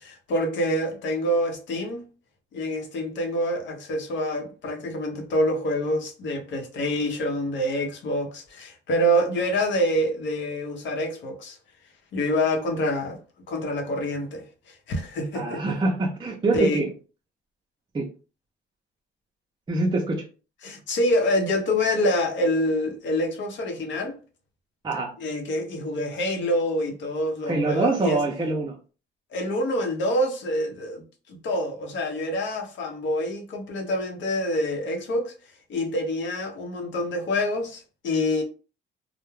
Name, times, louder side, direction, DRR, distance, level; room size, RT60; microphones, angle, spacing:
voice 1, 0.3-2.0 2.5-11.6 12.1-13.2 13.5-15.6 16.5-16.8 20.6-24.2 25.2-28.2 29.3-35.3 35.7-38.4, equal, 70° left, 0.7 m, -26 dB
voice 2, 15.3-16.9 17.9-18.1 19.7-20.3 24.8-25.1 27.5-28.8, right 3 dB, 25° right, 0.5 m, -24 dB
2.3 x 2.0 x 3.0 m
cardioid pair, 90°, 20 cm